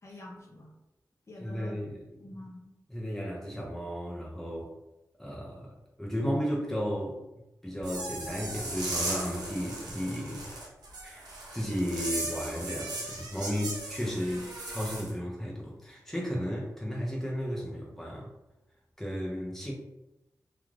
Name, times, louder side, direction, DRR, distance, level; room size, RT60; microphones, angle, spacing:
voice 1, 0.0-0.7 1.3-1.8 2.2-2.7 6.2-6.4, left 1 dB, 45° left, -2 dB, 0.7 m, -46 dB
voice 2, 1.4-2.1 2.9-4.7 5.2-7.2 7.6-10.5 11.0-18.3 19.0-19.7, equal, 5° left, -3 dB, 0.6 m, -34 dB
sound 1, 7.8-15.1, right 2 dB, 90° right, 0.7 m, -37 dB
2.4 x 2.3 x 3.2 m, 0.94 s
wide cardioid pair, 70°, 7 cm